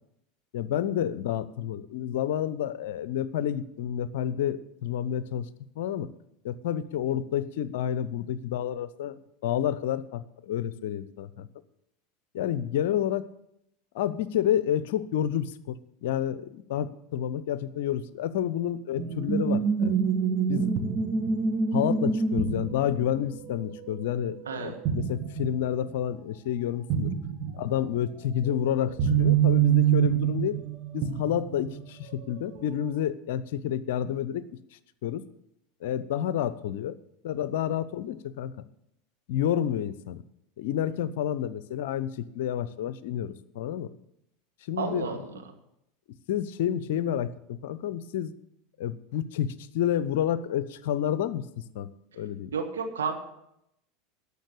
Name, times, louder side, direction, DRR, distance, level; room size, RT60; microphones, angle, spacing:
voice 1, 0.5-5.5 5.8-6.1 6.4-11.5 12.3-13.3 13.9-20.0 20.5-20.7 21.7-27.1 27.5-30.6 30.9-34.4 35.0-35.2 35.8-37.0 37.2-38.5 39.3-40.2 40.6-43.9 44.7-45.1 46.3-48.3 48.8-51.9 52.2-52.5, left 10 dB, 65° left, 16 dB, 0.6 m, -29 dB
sound 1, 19.0-24.6 24.9-25.6 25.9-26.0 26.9-27.6 28.4-31.8 32.6-33.0, right 7 dB, 50° right, 1.6 m, -26 dB
voice 2, 24.5-24.8 40.8-40.9 44.8-45.3 52.5-53.2, right 5 dB, 75° right, 4 dB, 1.6 m, -32 dB
11.5 x 6.8 x 8.2 m, 0.80 s
figure-of-eight pair, 80°, 0 cm